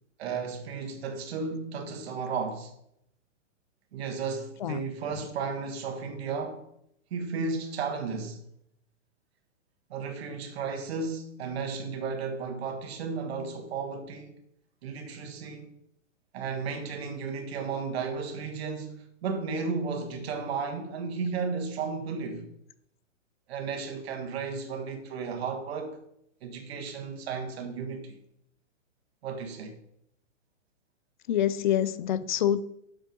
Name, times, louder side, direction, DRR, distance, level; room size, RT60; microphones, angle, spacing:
voice 1, 0.2-2.7 3.9-6.6 7.1-8.4 9.9-14.3 14.8-15.7 16.3-22.5 23.5-26.0 26.4-28.2 29.2-29.7, right 5 dB, 50° right, 1.6 m, -34 dB
voice 2, 31.3-32.6, left 10 dB, 40° left, 0.4 m, -26 dB
7.1 x 5.6 x 5.2 m
hypercardioid pair, 160°, 39 cm